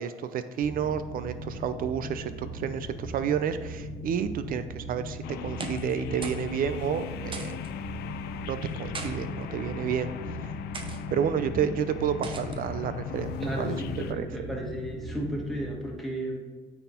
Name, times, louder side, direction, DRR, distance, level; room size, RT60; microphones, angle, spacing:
voice 1, 0.0-7.6 8.5-10.1 11.1-13.8 14.1-14.3, right 8 dB, 55° right, 11 dB, 0.6 m, -30 dB
sound 1, 0.6-15.7, equal, 25° left, 0.7 m, -39 dB
sound 2, 5.2-14.1, left 10 dB, 75° left, 0.5 m, -39 dB
sound 3, 5.4-6.0 6.2-6.5 6.8-6.9 7.3-7.7 8.6-9.1 9.9-10.1 10.7-11.0 12.2-12.6, right 4 dB, 30° right, 0.8 m, -39 dB
voice 2, 13.4-16.4, right 1 dB, ahead, -2 dB, 1.6 m, -34 dB
8.9 x 4.2 x 4.4 m, 1.4 s
cardioid pair, 110°, 17 cm